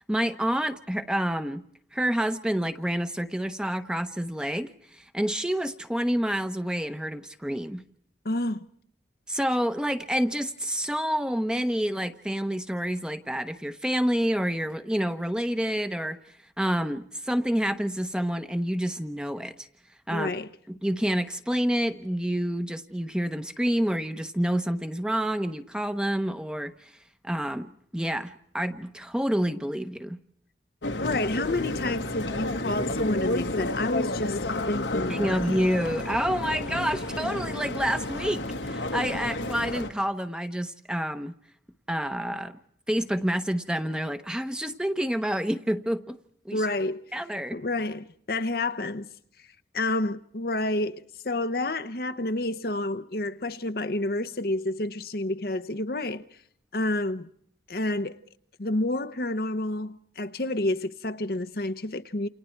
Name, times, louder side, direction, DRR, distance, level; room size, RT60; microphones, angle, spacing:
voice 1, 0.1-1.6 1.9-7.8 9.3-16.2 16.6-19.7 20.1-20.3 20.7-26.9 27.2-30.2 35.1-41.4 41.9-42.6 42.9-46.2 46.4-46.6 47.1-47.6, equal, 5° right, 1.0 m, -28 dB
voice 2, 8.2-8.7 20.1-20.5 31.0-35.6 46.5-47.0 47.5-49.1 49.7-56.2 56.7-57.3 57.7-58.2 58.6-62.3, left 2 dB, 55° left, 0.9 m, -29 dB
sound 1, 30.8-39.9, left 2 dB, 85° left, 2.0 m, -31 dB
29.5 x 28.5 x 4.6 m
head